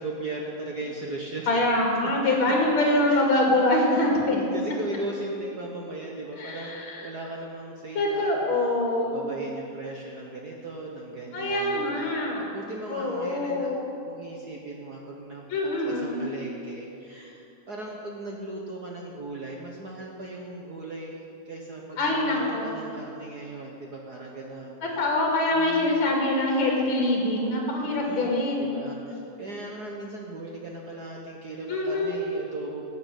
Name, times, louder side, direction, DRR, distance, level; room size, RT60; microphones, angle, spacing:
voice 1, 0.0-1.5 2.0-3.2 3.5-3.6 3.9-8.8 9.0-24.8 25.5-26.1 27.8-28.3 28.6-32.9, right 2 dB, 70° right, -1 dB, 0.9 m, -38 dB
voice 2, 1.5-4.4 6.4-7.1 7.9-9.5 11.3-12.4 12.9-13.9 15.5-16.2 22.0-22.7 24.8-28.8 31.7-32.2, left 2 dB, 40° left, -1 dB, 3.1 m, -24 dB
14.0 x 7.8 x 9.2 m, 2.8 s
omnidirectional pair, 3.5 m